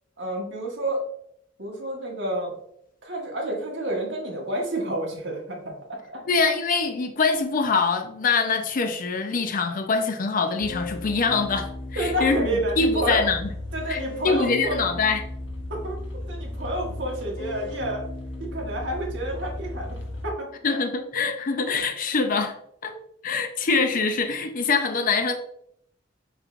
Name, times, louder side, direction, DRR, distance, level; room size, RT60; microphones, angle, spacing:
voice 1, 0.2-1.0 1.6-2.5 3.0-6.2 11.9-13.2 13.7-14.8 15.7-16.0 16.3-18.0 18.4-20.0 20.2-20.5 22.9-23.0, right 1 dB, 65° right, 1.4 m, -29 dB
voice 2, 6.2-13.5 13.9-15.2 20.6-22.6 22.8-22.9 23.2-25.3, left 4 dB, 45° left, 0.5 m, -24 dB
sound 1, 10.6-20.3, left 1 dB, 70° left, 0.9 m, -35 dB
6.2 x 3.2 x 2.5 m
head